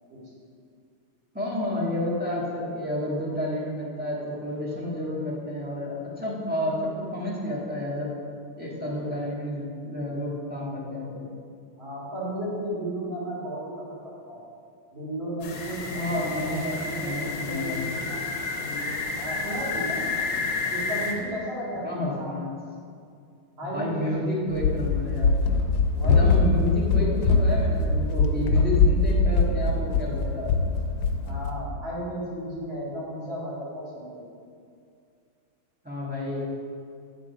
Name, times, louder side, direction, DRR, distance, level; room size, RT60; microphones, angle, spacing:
voice 1, 1.3-8.1 8.6-11.2 15.9-17.8 21.8-22.5 23.7-25.3 26.0-30.5 35.8-36.4, left 1 dB, 5° right, -7 dB, 1.1 m, -30 dB
voice 2, 11.8-13.6 14.0-14.4 14.9-17.1 17.4-18.3 18.6-20.0 20.7-22.3 23.6-24.2 25.9-26.4 31.2-34.2, right 1 dB, 65° right, -7 dB, 2.9 m, -34 dB
sound 1, 15.4-21.1, left 4 dB, 65° left, 1.3 m, -31 dB
Run, 24.5-31.6, left 3 dB, 85° left, 1.5 m, -22 dB
9.1 x 3.8 x 5.1 m, 2.3 s
omnidirectional pair, 2.3 m